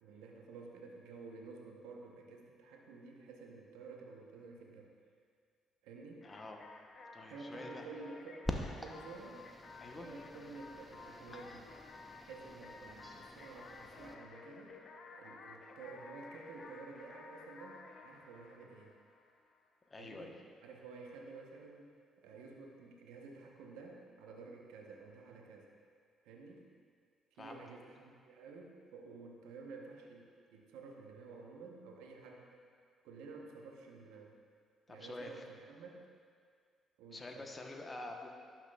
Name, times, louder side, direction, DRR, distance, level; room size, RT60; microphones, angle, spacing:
voice 1, 0.0-4.9 5.8-6.3 7.2-9.4 9.9-11.7 12.2-14.8 15.1-18.9 20.0-20.4 20.6-25.7 26.2-26.6 27.4-32.5 33.0-34.4 34.9-36.1 37.0-37.5, right 4 dB, 80° right, 0 dB, 0.9 m, -51 dB
sound 1, 6.2-19.7, left 4 dB, 55° left, 0.6 m, -54 dB
voice 2, 6.2-6.7 7.1-7.8 9.8-10.1 19.9-20.3 27.4-27.6 34.9-35.4 37.1-38.3, left 2 dB, 30° left, 2 dB, 1.0 m, -47 dB
sound 2, 8.5-14.2, left 1 dB, 10° left, 0.7 m, -46 dB
11.5 x 5.9 x 2.3 m, 2.1 s
hypercardioid pair, 55°, 0 cm